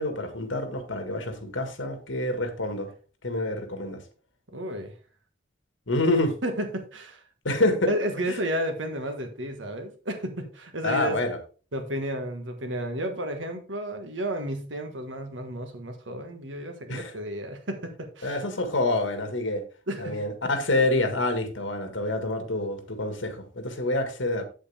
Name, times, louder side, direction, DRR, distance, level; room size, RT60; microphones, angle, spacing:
voice 1, 0.0-2.9 3.2-4.0 5.9-6.3 7.4-7.9 8.3-8.4 10.8-11.4 16.9-17.1 18.2-19.6 20.0-24.4, left 2 dB, 85° left, 1.7 m, -27 dB
voice 2, 4.5-4.9 6.4-7.2 7.8-11.2 11.7-18.4 19.9-20.3, right 1 dB, 80° right, 1.6 m, -32 dB
8.1 x 7.9 x 3.4 m
head